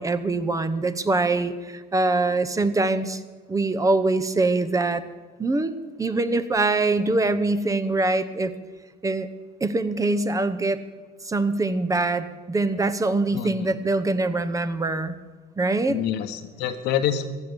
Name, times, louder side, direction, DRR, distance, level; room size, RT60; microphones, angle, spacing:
voice 1, 0.0-3.2 3.5-5.0 5.4-8.5 9.0-9.3 9.6-10.8 11.2-15.1 15.6-16.0, right 2 dB, 20° right, 11 dB, 0.9 m, -23 dB
voice 2, 13.3-13.8 15.9-17.3, left 9 dB, 85° left, 8 dB, 1.2 m, -27 dB
15.5 x 9.9 x 6.9 m, 1.4 s
cardioid pair, 110°, 17 cm